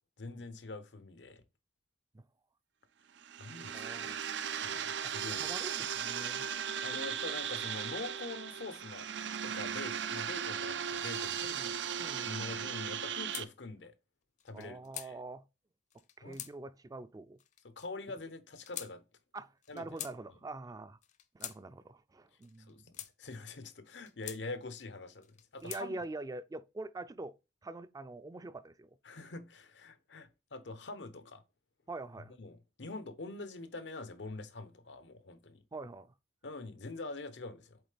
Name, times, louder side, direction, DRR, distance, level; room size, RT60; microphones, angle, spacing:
voice 1, 0.2-1.4 3.4-4.2 4.6-5.5 6.8-9.1 9.4-11.6 12.2-13.9 14.4-15.2 16.2-16.4 17.6-19.0 19.7-19.8 22.7-25.2 25.5-25.9 29.0-31.4 32.4-35.6 36.4-37.8, left 3 dB, 90° left, 0.9 m, -44 dB
sound 1, 3.2-13.4, right 8 dB, 85° right, 0.5 m, -37 dB
voice 2, 3.7-4.2 4.8-6.5 11.4-12.6 14.5-15.4 16.2-17.4 19.3-21.0 21.3-22.9 25.6-27.4 27.6-29.0 31.9-32.4 35.7-36.1, right 2 dB, 20° right, 0.3 m, -45 dB
sound 2, 13.3-13.5 14.4-15.1 15.9-16.5 17.4-17.9 18.6-18.9 19.6-20.2 21.0-21.6 22.4-23.1 23.9-24.4 25.2-25.8, left 10 dB, 45° left, 0.5 m, -45 dB
8.0 x 3.7 x 3.3 m
head